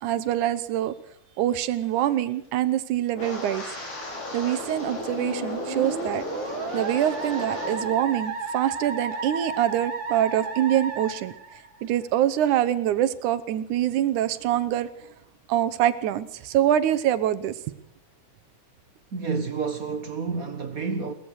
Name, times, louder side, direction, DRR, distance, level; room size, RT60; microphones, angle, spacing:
voice 1, 0.0-0.9 1.4-3.7 4.3-6.2 6.7-11.3 11.8-14.9 15.5-17.6, right 11 dB, 75° right, 2.3 m, -25 dB
Wind, 3.1-8.0 8.3-8.7 9.1-9.4, left 2 dB, 75° left, 6.4 m, -35 dB
Musical instrument, 5.2-12.0, right 4 dB, 40° right, 2.4 m, -33 dB
voice 2, 19.1-21.1, right 5 dB, 55° right, 0.9 m, -29 dB
22.0 x 18.5 x 6.3 m
omnidirectional pair, 3.6 m